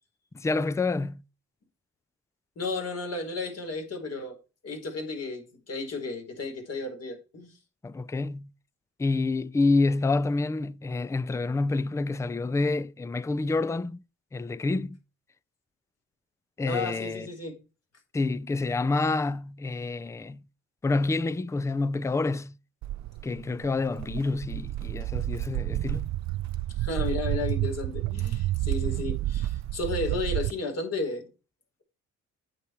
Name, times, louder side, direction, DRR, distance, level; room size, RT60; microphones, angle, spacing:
voice 1, 0.3-1.2 7.8-8.5 9.0-14.0 14.3-15.0 16.6-17.3 18.1-20.4 20.8-22.5 23.2-26.1, left 3 dB, 10° left, 0.4 m, -28 dB
voice 2, 2.6-4.4 4.6-7.6 16.7-17.6 26.8-31.3, left 3 dB, 55° left, 4.3 m, -33 dB
Walk footsteps, 22.8-30.5, right 15 dB, 65° right, 0.5 m, -30 dB
8.8 x 8.5 x 4.5 m
cardioid pair, 90°, 30 cm